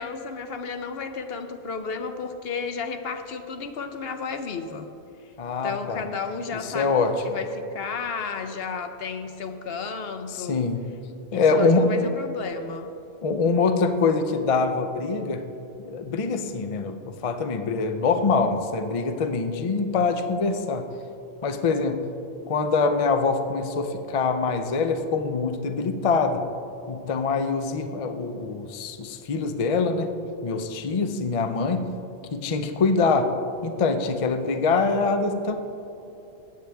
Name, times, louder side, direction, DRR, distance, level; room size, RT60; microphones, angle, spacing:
voice 1, 0.0-4.9 5.6-10.7 11.3-12.9, left 5 dB, 60° left, 7 dB, 0.9 m, -33 dB
voice 2, 5.4-6.0 6.5-7.2 10.3-10.9 11.3-12.1 13.2-15.5 15.8-20.9 21.4-22.1 22.5-26.5 26.9-30.1 30.4-31.9 32.3-33.4 33.6-35.6, left 4 dB, 40° left, 7 dB, 0.5 m, -24 dB
15.0 x 8.8 x 3.4 m, 2.8 s
omnidirectional pair, 1.2 m